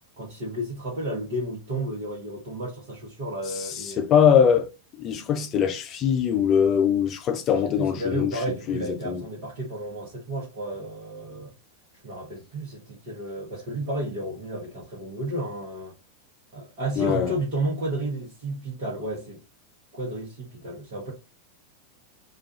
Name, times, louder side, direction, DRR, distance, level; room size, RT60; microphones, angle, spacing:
voice 1, 0.2-4.0 7.5-11.5 12.0-15.9 16.5-19.4 19.9-21.1, right 1 dB, 45° right, 1.0 m, -32 dB
voice 2, 4.0-4.7 5.0-8.3 8.7-9.2 17.0-17.3, left 8 dB, 30° left, 0.4 m, -22 dB
2.4 x 2.3 x 2.6 m
figure-of-eight pair, 90°, 0 cm